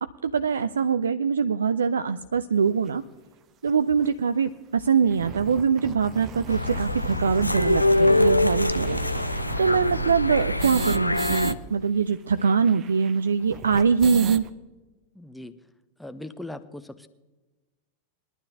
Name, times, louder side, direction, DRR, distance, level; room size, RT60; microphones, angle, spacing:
voice 1, 0.0-3.0 3.6-9.0 9.2-14.4, right 6 dB, 70° right, 12 dB, 0.4 m, -23 dB
sound 1, 2.9-3.0 3.7-3.8 4.0-4.1 4.4-4.5 4.9-11.6 11.8-11.9 12.1-14.5, right 8 dB, 30° right, 0.7 m, -38 dB
sound 2, 6.5-11.5, left 1 dB, 85° left, 0.5 m, -24 dB
voice 2, 15.1-15.5 16.0-17.1, left 1 dB, 5° left, 9 dB, 0.8 m, -39 dB
21.5 x 11.5 x 2.8 m, 1.1 s
figure-of-eight pair, 90°, 0 cm